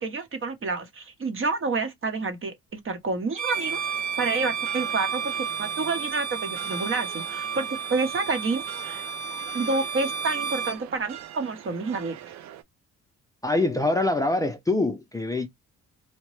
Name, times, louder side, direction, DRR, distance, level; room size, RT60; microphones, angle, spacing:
voice 1, 0.0-3.8 4.2-5.3 5.6-9.0 9.5-12.2, right 3 dB, 45° right, 0.9 m, -29 dB
Bowed string instrument, 3.3-10.8, right 6 dB, 85° right, 1.2 m, -32 dB
sound 1, 3.5-12.6, right 12 dB, 65° right, 0.5 m, -44 dB
voice 2, 13.4-15.5, left 2 dB, 10° left, 0.5 m, -24 dB
2.8 x 2.1 x 3.0 m
cardioid pair, 90°, 30 cm